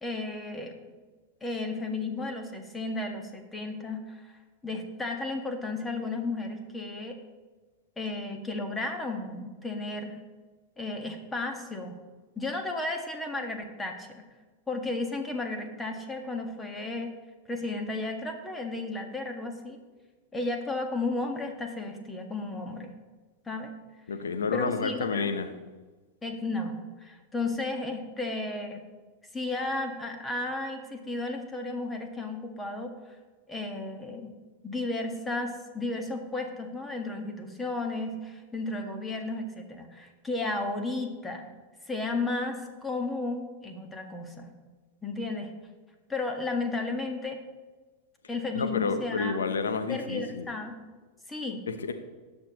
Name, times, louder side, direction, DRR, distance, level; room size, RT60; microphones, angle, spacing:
voice 1, 0.0-0.8 1.4-4.3 4.6-7.2 8.0-10.2 10.8-12.0 12.3-14.3 14.7-17.1 17.5-19.8 20.3-22.9 23.4-23.7 24.5-25.4 26.2-28.8 29.3-32.9 33.5-34.4 34.6-41.5 41.8-44.5 45.0-45.5 46.1-47.4 48.3-49.4 49.9-50.8 51.3-51.6, left 2 dB, 15° left, 4 dB, 1.8 m, -33 dB
voice 2, 24.1-25.5 48.5-50.5 51.7-51.9, left 5 dB, 80° left, 8 dB, 1.0 m, -30 dB
19.0 x 6.8 x 3.1 m, 1.3 s
hypercardioid pair, 95°, 0 cm